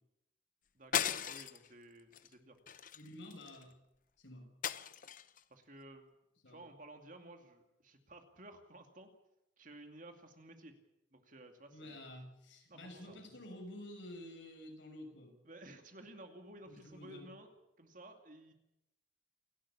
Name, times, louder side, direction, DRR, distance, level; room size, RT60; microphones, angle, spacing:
voice 1, 0.7-2.6 5.5-6.1 6.5-9.1 9.6-10.7 11.1-12.1 12.7-13.2 15.4-17.5 17.8-18.5, right 1 dB, 45° right, 5 dB, 2.5 m, -55 dB
sound 1, 0.9-1.7 2.1-2.3 2.7-3.6 4.6-5.4, left 9 dB, 45° left, 0.8 m, -37 dB
voice 2, 2.9-3.7 4.2-4.5 6.4-6.6 11.7-15.3 16.7-17.2, left 1 dB, 75° left, 3 dB, 6.7 m, -50 dB
28.5 x 12.5 x 8.6 m, 0.87 s
head